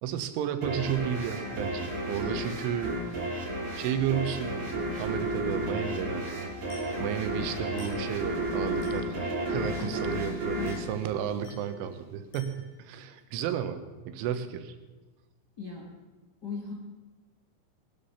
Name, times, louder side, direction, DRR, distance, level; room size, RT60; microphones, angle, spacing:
voice 1, 0.0-3.0 3.8-4.7 5.0-6.5 7.0-14.8, right 9 dB, 90° right, 9 dB, 3.6 m, -33 dB
sound 1, 0.6-11.9, right 1 dB, 35° right, 3.1 m, -33 dB
Glass, 6.7-7.0 7.8-8.1 8.8-9.1 9.8-10.1 10.7-11.0 11.4-11.8 12.3-12.7, left 3 dB, 85° left, 9.7 m, -52 dB
voice 2, 15.6-15.9 16.4-16.7, left 5 dB, 40° left, -3 dB, 1.4 m, -38 dB
20.5 x 12.0 x 5.7 m, 1.2 s
omnidirectional pair, 5.4 m